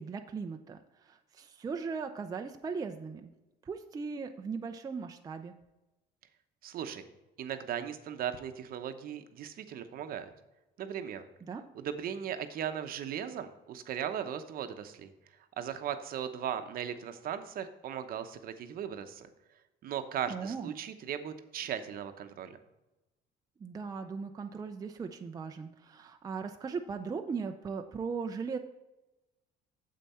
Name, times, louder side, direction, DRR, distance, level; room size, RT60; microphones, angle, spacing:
voice 1, 0.0-3.3 3.7-5.5 11.5-11.6 20.3-20.7 23.6-28.6, right 5 dB, 20° right, 5 dB, 0.5 m, -38 dB
voice 2, 6.6-7.0 7.4-10.3 10.8-11.3 11.7-15.1 15.6-19.3 19.8-22.6, right 9 dB, 55° right, 9 dB, 0.9 m, -37 dB
9.1 x 7.5 x 4.3 m, 1.0 s
cardioid pair, 135°, 18 cm